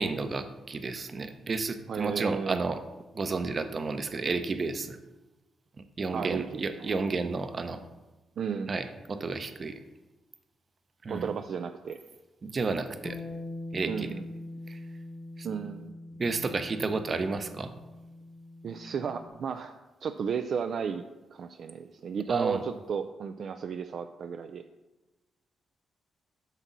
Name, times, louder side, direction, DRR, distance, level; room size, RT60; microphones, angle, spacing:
voice 1, 0.0-2.8 3.1-5.0 6.0-7.8 8.7-9.8 11.0-11.3 12.4-13.2 13.7-14.1 14.7-14.8 15.4-15.5 16.2-17.7 22.3-22.6, right 4 dB, 45° right, 9 dB, 0.8 m, -31 dB
voice 2, 1.9-2.6 6.1-6.4 6.8-6.9 8.4-8.8 11.1-12.0 13.9-14.2 15.4-16.0 18.6-19.7 20.0-21.0 21.3-24.6, right 6 dB, 65° right, 7 dB, 0.4 m, -33 dB
Bass guitar, 13.0-19.3, left 2 dB, 35° left, 1.0 m, -43 dB
8.0 x 6.0 x 4.0 m, 1.1 s
cardioid pair, 65°, 0 cm